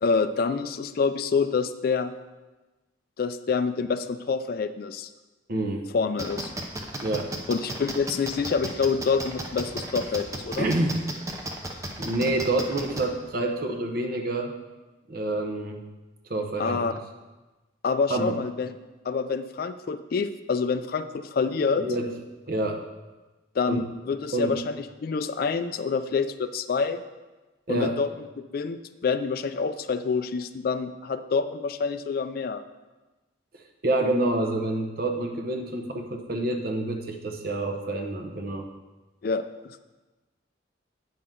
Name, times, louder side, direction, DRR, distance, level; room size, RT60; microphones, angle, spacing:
voice 1, 0.0-2.1 3.2-5.1 5.9-6.5 7.5-10.7 16.6-16.9 17.8-18.7 19.1-21.9 23.6-27.0 27.7-28.1 28.5-32.6 39.2-39.8, left 5 dB, 50° left, 11 dB, 0.3 m, -27 dB
voice 2, 5.5-5.9 7.0-7.3 10.6-11.0 12.0-14.6 15.1-15.8 16.3-17.0 18.1-18.4 21.8-22.1 22.5-22.8 23.7-23.8 24.3-24.6 27.7-28.0 33.5-38.6, right 2 dB, 50° right, 3 dB, 0.8 m, -27 dB
sound 1, 6.2-13.0, right 1 dB, 15° right, 0.6 m, -34 dB
9.0 x 5.9 x 3.7 m, 1.2 s
head